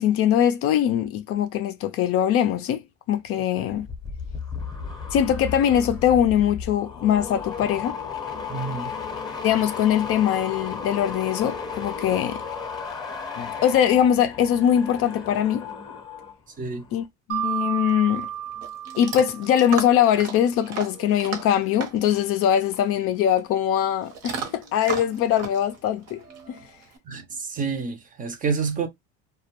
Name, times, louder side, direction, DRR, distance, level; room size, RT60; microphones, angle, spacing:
voice 1, 0.0-2.8 3.1-3.9 5.1-8.0 9.4-12.4 13.4-15.6 16.9-18.3 19.0-26.2 26.5-26.6, left 10 dB, 50° left, 0.4 m, -22 dB
sound 1, 3.7-16.3 16.6-17.1, left 6 dB, 15° left, 0.7 m, -34 dB
voice 2, 8.5-8.9 16.6-16.8 27.1-28.9, right 5 dB, 25° right, 0.5 m, -28 dB
Mallet percussion, 17.3-20.1, right 11 dB, 85° right, 0.9 m, -32 dB
Chewing mastication / Dog, 17.8-27.0, right 6 dB, 55° right, 0.9 m, -37 dB
2.2 x 2.0 x 2.9 m
supercardioid pair, 110°, 31 cm